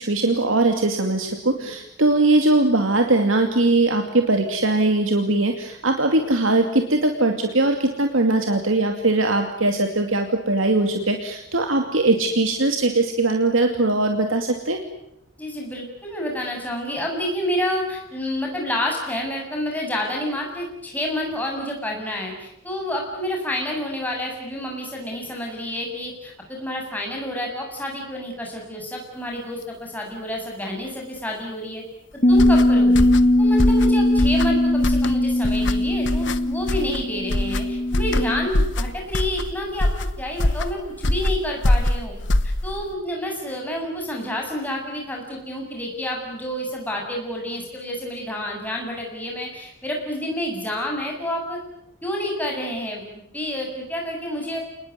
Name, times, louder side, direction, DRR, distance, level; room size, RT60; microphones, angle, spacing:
voice 1, 0.0-14.8, right 2 dB, 75° right, 4 dB, 2.5 m, -20 dB
voice 2, 15.4-31.8 32.3-33.1 33.4-42.1 42.6-51.6 52.0-53.0 53.3-54.6, left 1 dB, 10° left, 0 dB, 7.4 m, -29 dB
Bass guitar, 32.2-38.5, left 1 dB, 40° left, 1.9 m, -19 dB
sound 1, 32.3-42.9, left 1 dB, 60° left, 1.2 m, -24 dB
28.5 x 20.5 x 9.7 m, 0.79 s
head